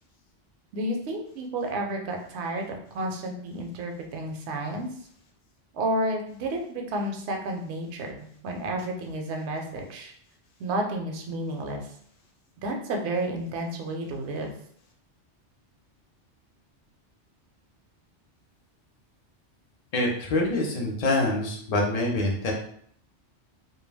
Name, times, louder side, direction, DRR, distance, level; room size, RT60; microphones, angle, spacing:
voice 1, 0.7-4.9 5.7-10.1 10.6-11.8 12.6-14.5, right 1 dB, 70° right, 2 dB, 0.8 m, -31 dB
voice 2, 19.9-22.5, left 2 dB, 45° left, -1 dB, 0.6 m, -25 dB
2.2 x 2.2 x 3.2 m, 0.63 s
omnidirectional pair, 1.2 m